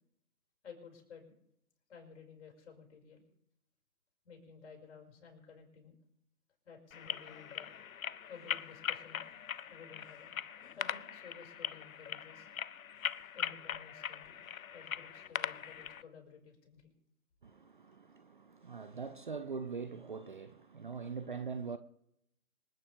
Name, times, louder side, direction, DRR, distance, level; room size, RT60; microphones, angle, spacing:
voice 1, 0.6-1.4 1.9-3.3 4.2-6.0 6.6-7.7 8.3-9.3 9.7-10.4 10.8-12.5 13.3-14.4 14.7-16.9, left 6 dB, 50° left, 5.7 m, -54 dB
sound 1, 6.9-16.0, left 8 dB, 65° left, 0.6 m, -41 dB
voice 2, 17.4-21.8, right 5 dB, 35° right, 0.6 m, -42 dB
26.5 x 9.2 x 3.5 m
figure-of-eight pair, 145°, 44 cm